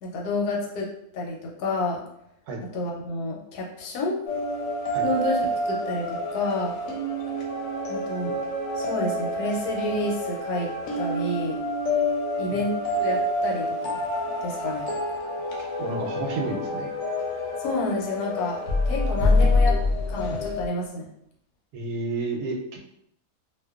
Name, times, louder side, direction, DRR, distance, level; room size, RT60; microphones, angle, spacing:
voice 1, 0.0-0.9 1.1-2.0 2.7-4.2 5.0-5.4 5.7-6.7 7.9-8.4 8.7-10.7 11.0-11.6 12.4-14.0 14.4-14.9 17.6-18.6 18.8-19.8 20.1-21.1, left 2 dB, 85° left, -1 dB, 1.2 m, -29 dB
sound 1, 4.3-20.7, left 1 dB, 70° left, 0.9 m, -27 dB
voice 2, 15.4-16.9 21.7-22.8, right 2 dB, 85° right, 0 dB, 1.1 m, -31 dB
2.7 x 2.2 x 2.3 m, 0.75 s
omnidirectional pair, 1.6 m